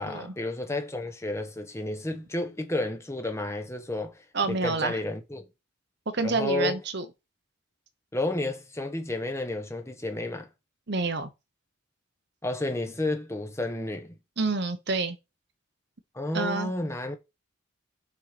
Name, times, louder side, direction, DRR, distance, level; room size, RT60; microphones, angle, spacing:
voice 1, 0.0-5.5 6.2-6.8 8.1-10.5 12.4-14.1 16.1-17.2, left 2 dB, 15° left, 1.1 m, -31 dB
voice 2, 4.3-5.0 6.1-7.0 10.9-11.3 14.4-15.2 16.3-16.7, right 3 dB, 55° right, 1.0 m, -28 dB
7.0 x 4.5 x 5.1 m
head